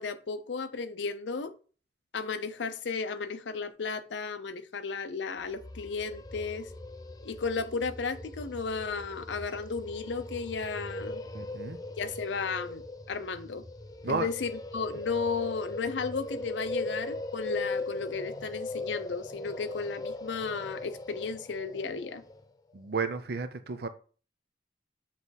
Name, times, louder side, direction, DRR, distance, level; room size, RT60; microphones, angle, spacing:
voice 1, 0.0-1.5 2.1-6.7 7.2-11.2 12.0-12.8 13.1-13.6 14.1-22.2, left 4 dB, 85° left, 0.6 m, -34 dB
sound 1, 5.4-22.4, left 2 dB, 20° left, 0.5 m, -40 dB
voice 2, 11.3-11.8 14.0-14.3 22.7-23.9, right 4 dB, 60° right, 0.6 m, -32 dB
7.4 x 3.1 x 4.1 m
head